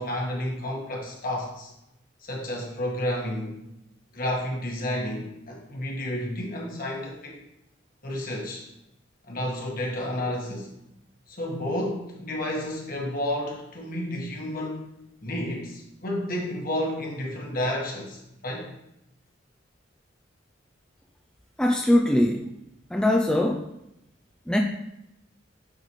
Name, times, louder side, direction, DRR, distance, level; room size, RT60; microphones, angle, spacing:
voice 1, 0.0-1.7 2.2-3.6 4.1-7.4 8.0-8.7 9.3-10.7 11.3-14.8 15.2-18.7, left 1 dB, 50° left, -1 dB, 1.5 m, -31 dB
voice 2, 21.6-22.5 22.9-23.7 24.5-24.6, left 1 dB, 5° left, 1 dB, 0.4 m, -21 dB
8.8 x 4.0 x 3.1 m, 0.85 s
head